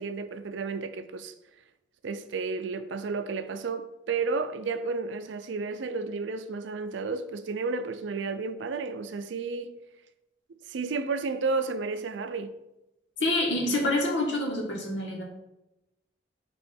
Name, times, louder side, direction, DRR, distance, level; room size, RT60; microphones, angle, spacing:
voice 1, 0.0-1.3 2.0-9.8 10.7-12.5, right 4 dB, 80° right, 0.4 m, -32 dB
voice 2, 13.2-15.2, left 1 dB, 85° left, 1.6 m, -27 dB
7.6 x 3.1 x 4.3 m
head